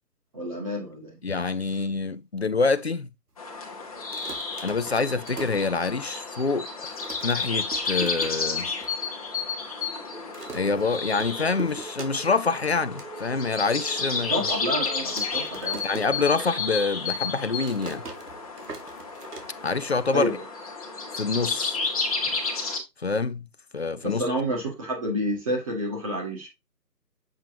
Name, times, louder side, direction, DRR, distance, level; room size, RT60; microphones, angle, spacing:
voice 1, 0.3-1.2 14.3-15.8 20.1-20.3 24.0-26.5, equal, 20° right, 1.8 m, -29 dB
voice 2, 1.2-3.1 4.6-7.0 7.2-8.7 10.5-14.5 15.8-18.0 19.6-20.3 21.1-21.8 23.0-23.5 23.7-24.2, left 4 dB, 40° left, 0.5 m, -26 dB
sound 1, 3.4-22.8, left 4 dB, 20° left, 1.2 m, -32 dB
sound 2, 4.0-6.2 6.6-6.7 6.9-8.9 9.3-9.4 9.6-9.9 10.3-12.5 12.8-13.1 13.6-13.7 14.5-16.9 17.2-20.1, right 3 dB, 70° right, 2.3 m, -42 dB
sound 3, 10.1-16.6, right 5 dB, 45° right, 1.6 m, -45 dB
7.7 x 5.2 x 2.9 m
hypercardioid pair, 165°, 48 cm